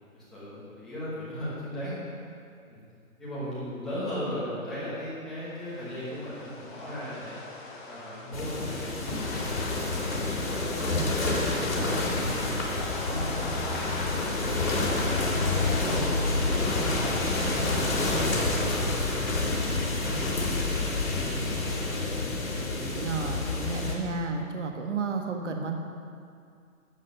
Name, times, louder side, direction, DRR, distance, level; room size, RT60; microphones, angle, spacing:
voice 1, 0.1-2.0 2.7-2.8 3.2-7.4 7.9-10.1 11.0-11.4 11.7-12.4 13.0-15.2 15.6-16.0 16.3-18.9 19.3-19.5 20.1-22.0, equal, ahead, -13 dB, 1.0 m, -38 dB
sound 1, 5.7-18.3, left 2 dB, 35° left, 1.6 m, -38 dB
sound 2, 8.3-23.9, left 2 dB, 70° left, 3.3 m, -28 dB
voice 2, 22.8-25.8, right 4 dB, 55° right, 3 dB, 1.5 m, -32 dB
12.0 x 8.2 x 5.5 m, 2.4 s
hypercardioid pair, 170°, 43 cm